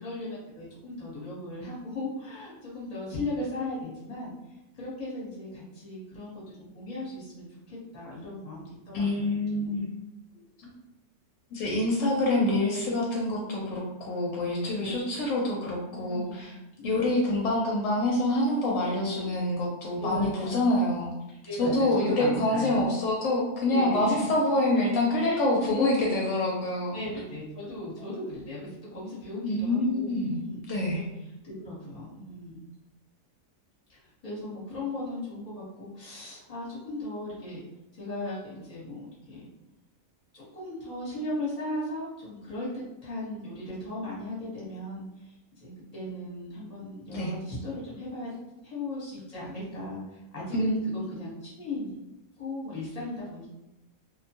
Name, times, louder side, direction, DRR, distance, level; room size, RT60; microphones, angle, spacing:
voice 1, 0.0-4.3 4.7-9.8 10.3-10.4 11.9-13.0 14.7-15.2 15.9-16.4 16.8-17.1 18.8-19.3 20.0-20.6 21.4-22.8 23.7-24.3 25.1-26.2 26.9-30.6 30.9-31.1 31.4-32.6 33.9-37.6 37.9-39.5 40.3-48.3 48.6-52.0 52.4-53.5, left 2 dB, 30° left, -7 dB, 0.9 m, -37 dB
voice 2, 8.9-9.9 11.5-16.5 16.8-21.1 21.6-27.0 29.4-30.4 30.7-31.0 47.1-47.3 50.5-50.8, left 1 dB, 70° left, -2 dB, 0.9 m, -26 dB
2.5 x 2.2 x 2.8 m, 0.93 s
omnidirectional pair, 1.5 m